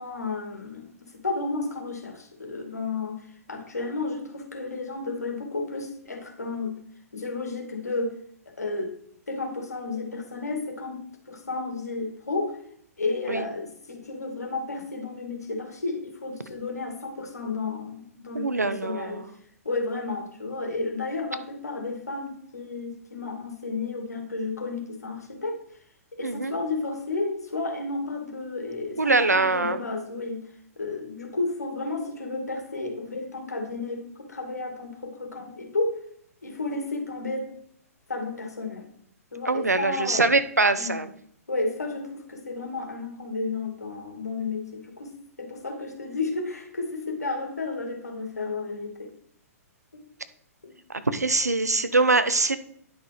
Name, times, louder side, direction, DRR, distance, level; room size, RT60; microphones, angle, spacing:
voice 1, 0.0-6.8 7.1-8.1 8.5-8.9 9.3-12.6 13.0-19.2 19.6-25.6 26.1-30.4 30.8-36.0 36.4-37.5 38.1-38.9 39.3-40.3 40.8-41.0 41.5-45.1 45.4-49.1 49.9-50.0 50.6-50.7, left 3 dB, 80° left, 5 dB, 2.4 m, -32 dB
voice 2, 18.3-19.3 26.2-26.5 29.0-29.8 39.5-41.1 51.1-52.6, right 3 dB, 85° right, 12 dB, 0.9 m, -23 dB
10.0 x 6.0 x 4.9 m, 0.66 s
figure-of-eight pair, 115°, 9 cm